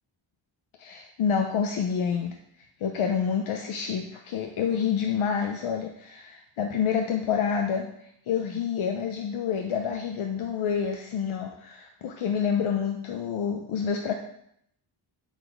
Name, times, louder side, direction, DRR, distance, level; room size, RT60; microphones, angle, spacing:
voice 1, 0.8-2.4 2.8-14.1, left 7 dB, 85° left, 4 dB, 0.7 m, -28 dB
6.9 x 4.1 x 4.5 m, 0.72 s
cardioid pair, 80°, 47 cm